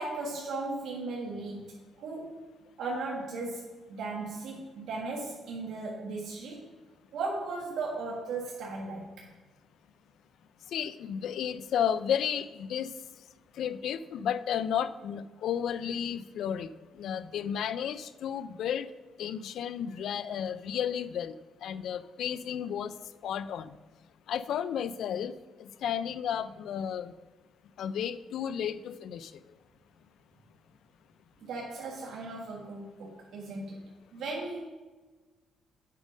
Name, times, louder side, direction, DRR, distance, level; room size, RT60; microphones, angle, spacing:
voice 1, 0.0-1.7 2.0-2.5 2.8-3.6 3.9-6.7 7.1-9.3 31.4-33.8 34.1-34.6, right 3 dB, 75° right, -3 dB, 1.5 m, -36 dB
voice 2, 10.7-12.9 13.6-16.7 17.0-18.9 19.2-21.3 21.6-22.9 23.2-23.7 24.3-25.3 25.6-27.1 27.8-29.3, left 8 dB, 75° left, 15 dB, 0.4 m, -32 dB
8.3 x 5.2 x 5.3 m, 1.3 s
cardioid pair, 90°, 0 cm